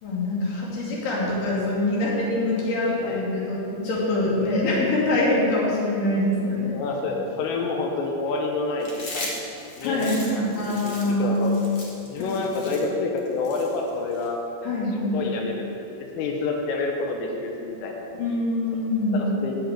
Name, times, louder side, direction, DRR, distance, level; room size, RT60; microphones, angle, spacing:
voice 1, 0.0-6.7 9.8-11.6 12.2-12.3 14.6-15.2 18.1-19.2, left 1 dB, 50° left, -5 dB, 3.8 m, -24 dB
voice 2, 6.7-9.4 9.8-11.5 12.0-14.4 14.8-18.1 19.1-19.6, left 3 dB, 90° left, 1 dB, 3.7 m, -28 dB
Chewing mastication, 8.8-14.3, left 2 dB, 65° left, 1.3 m, -38 dB
11.5 x 6.4 x 8.7 m, 3.0 s
omnidirectional pair, 5.7 m